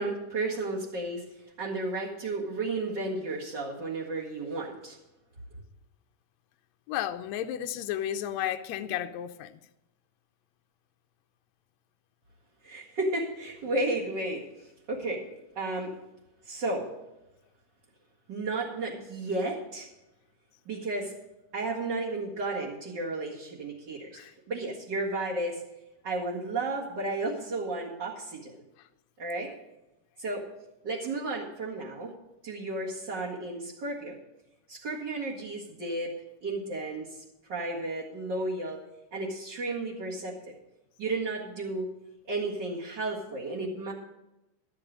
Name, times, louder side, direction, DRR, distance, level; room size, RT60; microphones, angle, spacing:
voice 1, 0.0-5.0 12.6-15.3 15.6-15.9 16.4-16.9 18.3-19.9 20.7-21.1 21.5-24.2 24.5-25.6 26.0-28.6 29.2-29.5 30.2-30.5 30.8-32.1 32.4-34.2 34.7-36.1 36.4-37.2 37.5-38.8 39.1-40.5 41.0-41.9 42.3-43.9, right 2 dB, 40° right, 2.1 m, -33 dB
voice 2, 6.9-9.6 24.1-24.3, left 11 dB, 80° left, 1.6 m, -33 dB
12.5 x 9.6 x 5.2 m
omnidirectional pair, 3.9 m